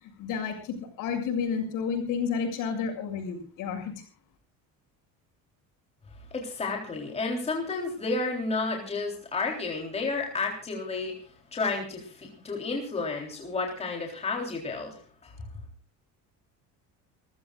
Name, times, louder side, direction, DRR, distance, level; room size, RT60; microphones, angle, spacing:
voice 1, 0.0-3.9, left 6 dB, 70° left, 6 dB, 7.1 m, -31 dB
voice 2, 6.3-11.2 11.5-15.3, left 3 dB, 20° left, 1 dB, 3.6 m, -31 dB
29.0 x 15.0 x 2.5 m, 0.37 s
cardioid pair, 175°, 34 cm